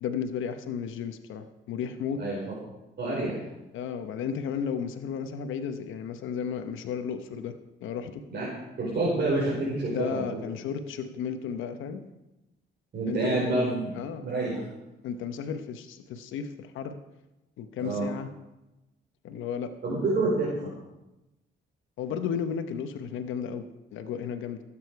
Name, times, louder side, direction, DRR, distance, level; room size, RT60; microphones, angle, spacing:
voice 1, 0.0-2.2 3.7-7.5 7.8-8.2 9.9-12.0 13.1-13.6 13.9-14.2 14.5-14.7 15.0-16.9 17.6-18.3 19.2-19.7 22.0-24.6, left 7 dB, 85° left, 9 dB, 1.0 m, -33 dB
voice 2, 3.0-3.4 8.3-8.4 8.8-10.4 12.9-13.8 14.2-14.6 17.8-18.0 19.8-20.5, right 2 dB, 55° right, -5 dB, 4.8 m, -27 dB
17.5 x 8.8 x 4.7 m, 0.98 s
cardioid pair, 90°, 20 cm